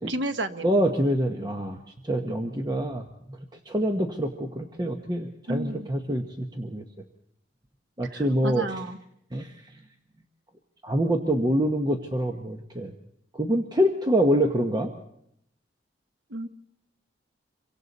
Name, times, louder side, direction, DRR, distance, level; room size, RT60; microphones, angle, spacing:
voice 1, 0.1-0.7 5.5-5.9 8.1-9.0 16.3-16.5, right 1 dB, 80° right, 9 dB, 1.1 m, -32 dB
voice 2, 0.6-1.8 2.0-3.4 3.7-6.8 8.0-8.7 9.3-9.7 10.8-12.9 13.3-14.9, equal, 25° right, 4 dB, 1.0 m, -26 dB
27.0 x 23.5 x 4.1 m, 0.76 s
head